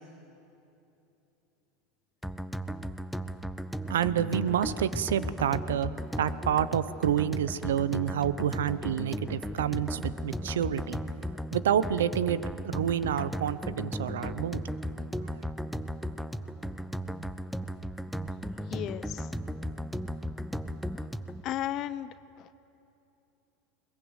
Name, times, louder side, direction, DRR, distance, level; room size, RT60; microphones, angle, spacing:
sound 1, 2.2-21.4, equal, ahead, 0.9 m, -36 dB
voice 1, 3.9-5.9 6.2-11.0 11.5-14.6, right 9 dB, 85° right, 16 dB, 0.8 m, -28 dB
voice 2, 18.7-19.3 21.0-21.1 21.4-22.5, left 12 dB, 50° left, 14 dB, 0.7 m, -35 dB
21.5 x 21.0 x 8.1 m, 2.9 s
hypercardioid pair, 95°, 0 cm